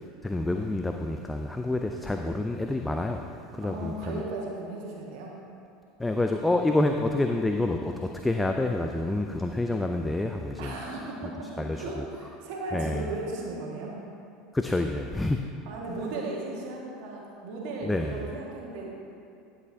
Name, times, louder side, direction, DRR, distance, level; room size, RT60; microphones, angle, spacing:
voice 1, 0.2-3.2 3.5-4.2 6.0-10.8 11.6-12.0 12.7-13.0 14.5-15.4 17.8-18.2, left 2 dB, 10° left, 4 dB, 0.4 m, -28 dB
voice 2, 3.6-5.3 6.7-6.8 10.6-14.0 15.6-19.0, right 2 dB, 55° right, -2 dB, 1.4 m, -36 dB
11.0 x 7.3 x 2.7 m, 2.6 s
figure-of-eight pair, 75°, 0 cm